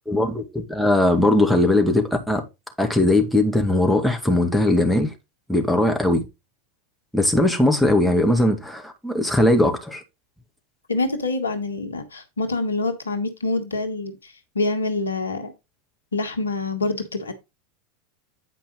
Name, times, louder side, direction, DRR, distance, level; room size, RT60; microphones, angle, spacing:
voice 1, 0.1-2.4 2.8-5.1 5.5-6.2 7.1-10.0, left 1 dB, ahead, 2.0 m, -19 dB
voice 2, 10.9-15.5 16.1-17.3, left 2 dB, 85° left, 1.4 m, -26 dB
9.1 x 5.1 x 3.9 m
figure-of-eight pair, 85°, 0 cm